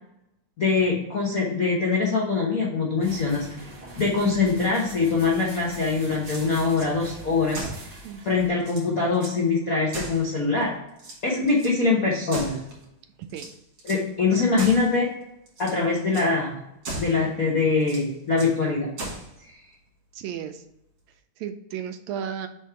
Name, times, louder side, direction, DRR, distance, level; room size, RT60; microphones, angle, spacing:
voice 1, 0.6-3.5 4.0-7.6 8.2-10.7 11.2-12.6 13.8-15.1 15.6-16.5 16.9-18.9 19.5-19.6, left 4 dB, 70° left, -4 dB, 0.8 m, -23 dB
sound 1, 3.0-8.5, right 1 dB, 10° right, 1.0 m, -43 dB
sound 2, 6.1-6.9 7.5-7.9 8.3-8.4 8.6-9.4 9.9-10.6 11.0-11.8 12.3-12.9 13.3-14.1 14.6-14.9 15.5-15.8 16.1-16.3 16.8-17.2 17.8-18.6 19.0-19.3, right 2 dB, 50° right, 2.4 m, -37 dB
voice 2, 8.0-8.5 13.3-13.5 20.1-20.6 21.4-22.5, right 8 dB, 80° right, 8 dB, 1.8 m, -34 dB
5.1 x 3.6 x 5.5 m, 0.82 s
omnidirectional pair, 3.3 m